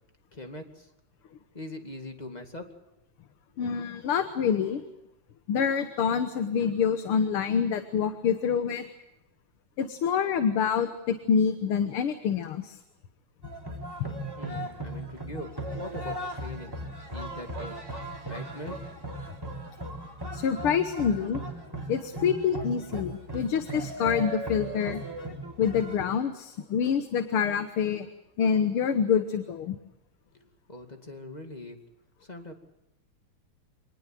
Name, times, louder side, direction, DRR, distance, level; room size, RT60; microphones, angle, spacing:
voice 1, 0.3-0.9 1.5-2.7 14.4-16.7 17.1-17.8 18.2-18.8 30.3-30.4 30.7-31.8 32.2-32.5, left 1 dB, 20° left, 4 dB, 2.3 m, -41 dB
voice 2, 3.6-4.8 5.5-8.9 9.8-12.8 20.3-21.4 21.9-25.0 25.6-28.1 28.4-29.8, left 7 dB, 80° left, 8 dB, 2.1 m, -26 dB
sound 1, 13.4-26.0, right 1 dB, 10° right, 3.7 m, -37 dB
26.0 x 19.0 x 7.5 m, 0.88 s
omnidirectional pair, 2.4 m